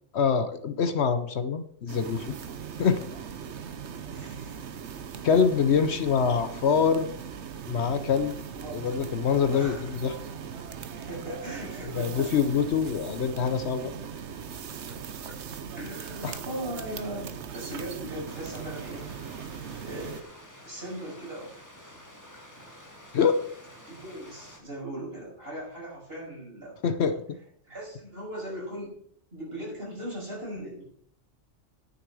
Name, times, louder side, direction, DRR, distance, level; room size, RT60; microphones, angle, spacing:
voice 1, 0.1-2.3 2.8-3.0 5.2-7.1 7.7-8.3 8.7-10.1 12.0-13.9 16.2-16.4 23.1-23.4 26.8-27.4, left 6 dB, 65° left, 10 dB, 1.0 m, -25 dB
sound 1, 1.9-20.2, right 7 dB, 65° right, 1.1 m, -39 dB
voice 2, 4.1-4.7 5.8-5.9 8.5-9.1 9.5-9.9 10.9-12.3 15.3-15.4 15.8-19.1 19.8-20.2 20.6-22.0 23.8-26.8 27.6-28.9 29.3-30.8, right 1 dB, 50° right, -5 dB, 6.2 m, -39 dB
Stream, 18.3-24.6, equal, 15° left, 2.0 m, -50 dB
10.0 x 7.0 x 6.2 m, 0.62 s
omnidirectional pair, 1.3 m